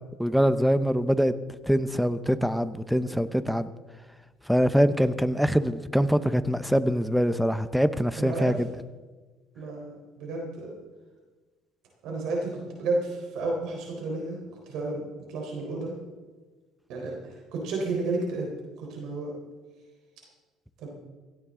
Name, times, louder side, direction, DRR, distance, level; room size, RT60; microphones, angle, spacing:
voice 1, 0.2-1.3 1.7-3.7 4.5-8.7, equal, ahead, 13 dB, 0.7 m, -24 dB
voice 2, 8.2-8.5 9.6-10.7 12.0-14.4 14.7-15.9 16.9-18.5 18.8-19.3 20.8-20.9, right 3 dB, 70° right, -1 dB, 3.9 m, -32 dB
17.0 x 15.5 x 3.7 m, 1.3 s
cardioid pair, 130°, 0 cm